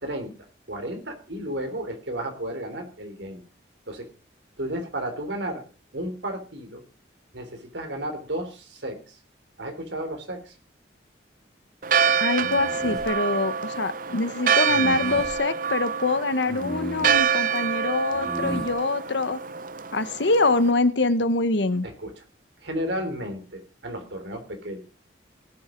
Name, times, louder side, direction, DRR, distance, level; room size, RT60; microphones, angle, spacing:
voice 1, 0.0-0.3 0.7-3.4 3.9-4.1 4.6-5.6 5.9-6.8 7.3-9.2 9.6-10.5 21.8-22.2 22.6-24.8, right 1 dB, 80° right, 5 dB, 3.5 m, -33 dB
Church bell, 11.8-20.7, right 7 dB, 45° right, 0.6 m, -26 dB
voice 2, 12.2-19.4 19.9-21.9, left 2 dB, 75° left, 13 dB, 1.1 m, -24 dB
sound 1, 12.4-13.1 14.7-15.3 16.5-17.2 18.1-18.7, equal, 5° left, 3.0 m, -34 dB
18.5 x 7.6 x 5.1 m, 0.36 s
head